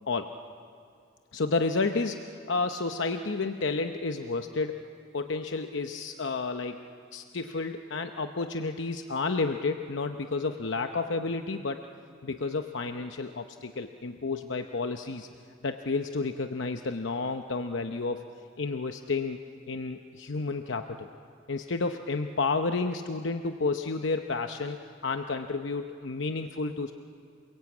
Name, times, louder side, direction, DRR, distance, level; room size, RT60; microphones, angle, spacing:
voice 1, 1.3-4.8 5.1-6.8 7.1-11.9 12.2-15.3 15.6-18.2 18.6-21.1 21.5-26.9, left 3 dB, 75° left, 6 dB, 0.8 m, -31 dB
28.5 x 22.0 x 8.5 m, 2.4 s
head